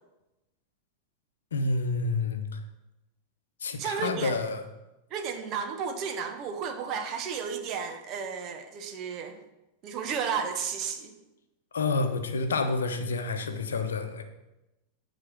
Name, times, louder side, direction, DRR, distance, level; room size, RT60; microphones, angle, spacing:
voice 1, 1.5-2.6 3.6-4.6 11.7-14.2, left 3 dB, 65° left, 7 dB, 0.8 m, -29 dB
voice 2, 3.8-4.4 5.1-9.4 9.8-11.1, right 6 dB, 35° right, 6 dB, 1.1 m, -33 dB
9.7 x 4.2 x 6.2 m, 0.98 s
figure-of-eight pair, 90°, 0 cm